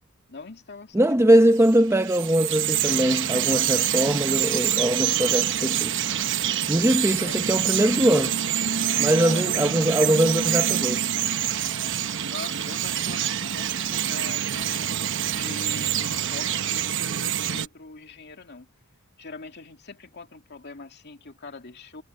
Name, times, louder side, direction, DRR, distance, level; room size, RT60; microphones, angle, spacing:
voice 1, 0.3-1.4 7.2-7.4 9.2-10.0 12.3-18.7 19.2-22.0, left 3 dB, 50° left, 2.5 m, -42 dB
voice 2, 0.9-6.0 6.7-8.4 9.0-11.0, right 1 dB, 15° right, 1.1 m, -21 dB
Bird vocalization bird call bird song, 1.5-17.7, right 10 dB, 60° right, 1.0 m, -26 dB
head